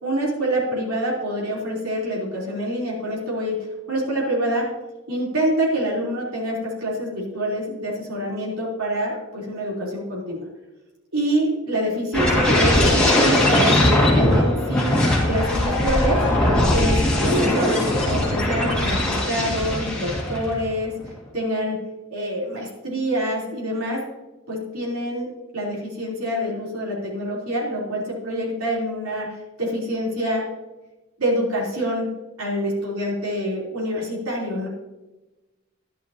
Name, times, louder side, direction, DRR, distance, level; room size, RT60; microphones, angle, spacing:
voice 1, 0.0-4.7 5.1-10.5 11.1-16.2 16.7-21.8 22.1-24.0 24.5-30.4 31.2-32.1 32.4-34.7, equal, 90° right, -4 dB, 3.6 m, -26 dB
sound 1, 12.1-20.6 21.0-21.3, left 1 dB, 5° left, 2.0 m, -20 dB
12.0 x 11.0 x 2.9 m, 1.1 s
head